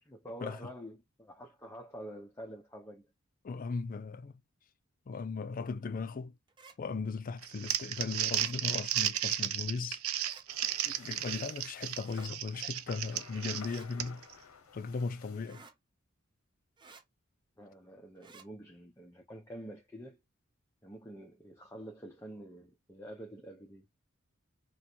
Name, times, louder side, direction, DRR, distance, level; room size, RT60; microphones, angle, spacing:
voice 1, 0.0-3.1 17.6-20.2 20.8-23.9, equal, 10° left, 0.7 m, -47 dB
voice 2, 3.4-4.4 5.1-6.4 6.8-10.0 10.8-14.2 14.7-15.6, left 4 dB, 40° left, 0.4 m, -37 dB
sound 1, 6.5-6.8 8.3-8.6 10.1-10.5 12.0-12.3 13.6-13.9 15.4-15.8 16.8-17.0 18.2-18.5, right 4 dB, 20° right, 0.6 m, -55 dB
Crumpling crinkling, 7.4-14.3, right 12 dB, 85° right, 0.5 m, -34 dB
sound 2, 10.5-15.5, left 6 dB, 85° left, 0.7 m, -53 dB
3.1 x 2.1 x 4.2 m
head